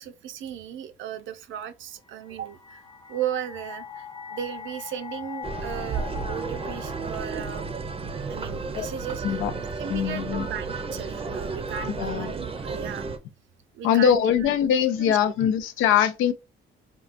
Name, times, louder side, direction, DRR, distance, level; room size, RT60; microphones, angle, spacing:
voice 1, 0.0-2.8 3.1-8.0 8.3-9.4 9.8-13.1 13.7-14.5 15.0-15.3, right 10 dB, 75° right, 0.5 m, -36 dB
sound 1, 2.1-9.2, left 8 dB, 20° left, 0.4 m, -42 dB
sound 2, 5.4-13.2, right 4 dB, 30° right, 0.5 m, -32 dB
voice 2, 9.9-10.5 12.0-12.3 13.8-16.3, left 9 dB, 90° left, 0.5 m, -22 dB
3.7 x 2.2 x 2.5 m
cardioid pair, 90°, 20 cm